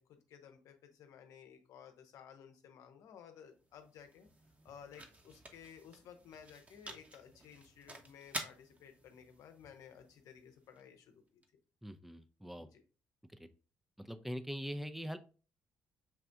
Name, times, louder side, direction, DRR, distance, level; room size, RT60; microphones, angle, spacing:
voice 1, 0.0-4.3 4.6-11.4 12.6-12.8, left 8 dB, 65° left, 7 dB, 0.8 m, -56 dB
sound 1, 3.4-11.4, right 1 dB, 25° right, 0.9 m, -51 dB
voice 2, 11.8-12.7 13.4-13.5 14.0-15.2, equal, 5° right, 9 dB, 0.5 m, -42 dB
6.1 x 2.5 x 3.4 m, 0.37 s
hypercardioid pair, 50°, 6 cm